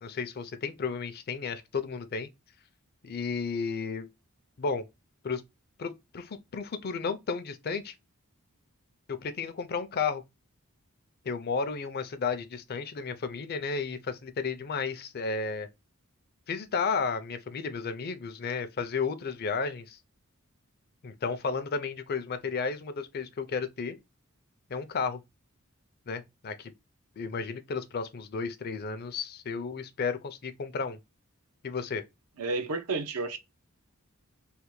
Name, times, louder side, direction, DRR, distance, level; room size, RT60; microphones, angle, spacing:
voice 1, 0.0-2.3 3.0-4.1 4.6-4.8 5.2-5.4 5.8-7.9 9.1-10.2 11.2-15.7 16.5-20.0 21.0-24.0 24.7-25.2 26.1-26.7 27.2-31.0 31.6-32.0, left 5 dB, 45° left, 0.5 m, -33 dB
voice 2, 32.4-33.4, right 3 dB, 85° right, 0.7 m, -31 dB
3.2 x 2.2 x 3.0 m
head